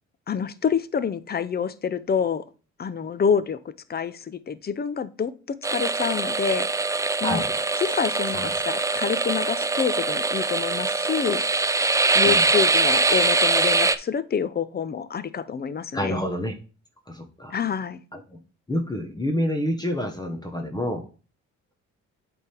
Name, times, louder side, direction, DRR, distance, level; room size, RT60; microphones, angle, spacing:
voice 1, 0.3-2.4 2.8-3.6 3.9-6.7 7.2-7.4 7.8-11.4 12.1-16.2 17.5-18.0, left 6 dB, 30° left, 15 dB, 0.6 m, -27 dB
sound 1, 5.6-14.0, right 3 dB, 10° right, 0.4 m, -23 dB
voice 2, 15.9-16.5 17.1-17.6 18.7-21.0, equal, 15° left, 3 dB, 1.1 m, -27 dB
8.1 x 3.6 x 4.5 m, 0.36 s
cardioid pair, 90°, 30 cm